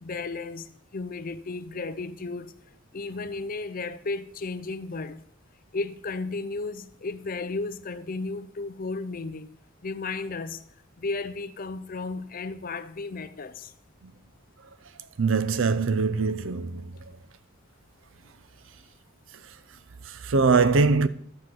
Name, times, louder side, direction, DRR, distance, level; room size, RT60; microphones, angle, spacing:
voice 1, 0.0-2.5 2.9-5.2 5.7-9.5 9.8-10.6 11.0-13.7, left 3 dB, 45° left, 0.6 m, -34 dB
voice 2, 15.2-17.0 20.1-21.1, right 4 dB, 70° right, 0.6 m, -22 dB
11.5 x 4.4 x 7.7 m
head